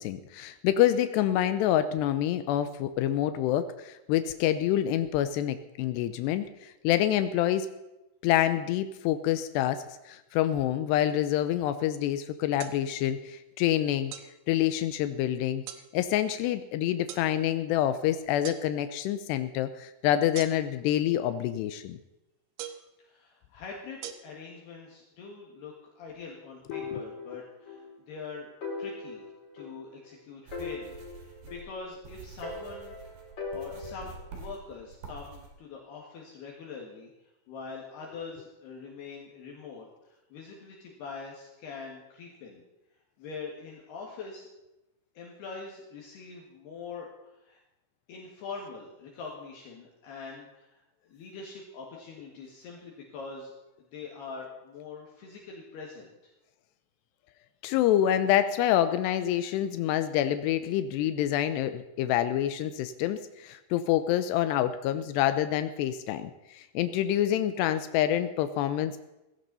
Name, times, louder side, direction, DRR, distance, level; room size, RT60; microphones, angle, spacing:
voice 1, 0.0-7.7 8.2-14.1 14.5-15.6 15.9-22.0 26.9-27.0 57.6-69.0, left 11 dB, 85° left, 11 dB, 2.4 m, -27 dB
sound 1, 12.6-12.8 14.1-14.3 15.7-15.9 17.1-17.3 18.4-18.6 20.3-20.8 22.6-22.9 24.0-24.1, right 11 dB, 75° right, 2.7 m, -40 dB
voice 2, 23.0-28.5 28.8-33.0 33.3-37.1 37.5-42.6 43.2-44.5 45.2-47.6 48.1-56.3, left 4 dB, 65° left, -2 dB, 3.6 m, -44 dB
sound 2, 26.7-27.9 28.2-28.3 28.6-30.1 30.5-32.0 32.4-34.3, left 4 dB, 35° left, 6.4 m, -40 dB
sound 3, 30.5-35.5, right 4 dB, 55° right, 3.9 m, -47 dB
18.0 x 16.0 x 4.1 m, 0.95 s
omnidirectional pair, 5.5 m